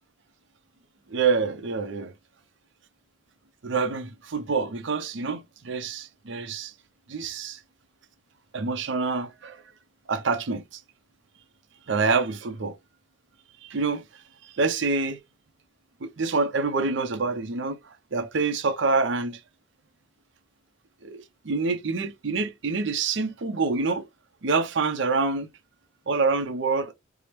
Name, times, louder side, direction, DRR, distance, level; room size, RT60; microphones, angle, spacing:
voice 1, 1.1-2.1 3.6-6.7 7.1-7.6 8.5-9.6 10.1-10.8 11.9-12.8 13.6-14.0 14.4-15.2 16.0-19.4 21.0-24.0 24.4-25.5 26.1-26.9, right 4 dB, 70° right, 0.6 m, -26 dB
4.8 x 2.0 x 3.0 m
head